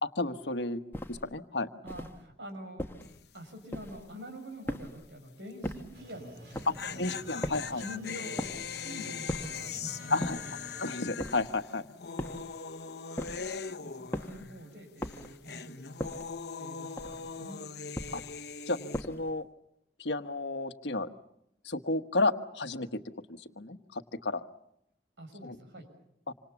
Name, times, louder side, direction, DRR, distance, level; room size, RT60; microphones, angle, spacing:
voice 1, 0.0-0.8 1.1-1.7 6.7-7.8 10.1-10.4 10.8-11.9 18.1-18.2 18.7-18.8 19.1-19.5 20.0-21.1 21.6-23.0 23.3-24.4 25.4-25.6 26.3-26.4, left 2 dB, 80° left, 9 dB, 1.3 m, -32 dB
sound 1, 0.9-1.3 1.9-2.2 2.8-3.2 3.7-4.1 4.7-5.1 5.6-6.0 6.5-6.9 7.4-7.8 8.4-8.7 9.3-9.7 10.2-10.6 11.2-11.6 12.2-12.6 13.2-13.6 14.1-14.5 15.0-15.4 16.0-16.4 17.0-17.4 17.9-18.4 18.9-19.4, equal, 15° left, 1.4 m, -39 dB
voice 2, 1.8-2.9 3.3-7.2 7.7-10.4 13.8-16.0 16.6-17.6 25.2-25.9, equal, 85° right, 4 dB, 6.8 m, -45 dB
sound 2, 3.0-3.4 3.6-3.7 6.4-14.7 15.0-19.0, left 6 dB, 65° left, 1.1 m, -41 dB
sound 3, 5.9-10.9, right 1 dB, 65° right, 7.2 m, -51 dB
27.0 x 26.0 x 7.2 m, 0.78 s
head